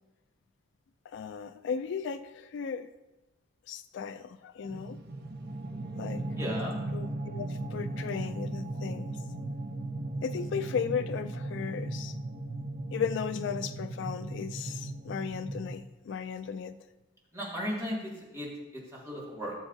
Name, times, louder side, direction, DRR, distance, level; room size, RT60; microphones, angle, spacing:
voice 1, 1.1-2.9 3.7-5.0 6.0-6.2 6.9-9.2 10.2-12.2 12.9-16.8, left 6 dB, 65° left, 12 dB, 0.3 m, -36 dB
sound 1, 4.7-15.7, right 2 dB, 55° right, 0.8 m, -37 dB
voice 2, 6.4-6.8 17.3-19.5, equal, 15° right, -5 dB, 2.3 m, -36 dB
14.0 x 7.0 x 2.7 m, 1.1 s
head